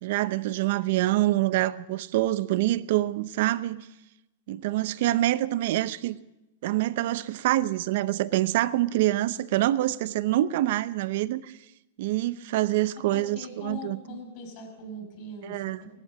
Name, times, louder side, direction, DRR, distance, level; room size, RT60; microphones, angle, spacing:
voice 1, 0.0-3.9 4.5-6.2 6.6-11.5 12.0-14.2 15.4-15.8, right 15 dB, 60° right, 16 dB, 0.7 m, -26 dB
voice 2, 13.1-16.0, left 1 dB, 45° left, 3 dB, 5.7 m, -41 dB
16.0 x 12.0 x 7.4 m, 0.96 s
supercardioid pair, 145°, 0 cm